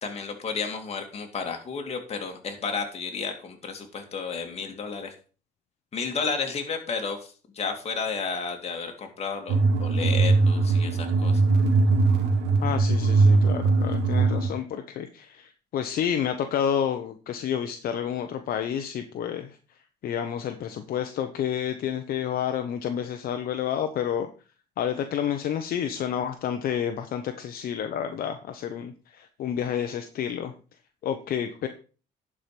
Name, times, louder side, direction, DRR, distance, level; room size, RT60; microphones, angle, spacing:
voice 1, 0.0-5.1 5.9-11.4, left 5 dB, 40° left, 3 dB, 2.5 m, -32 dB
sound 1, 9.5-14.5, right 3 dB, 85° right, 2.1 m, -21 dB
voice 2, 12.6-19.6 20.0-24.3 24.8-30.5 31.0-31.7, left 9 dB, 60° left, 7 dB, 1.0 m, -30 dB
11.0 x 5.0 x 5.9 m, 0.38 s
cardioid pair, 110°, 17 cm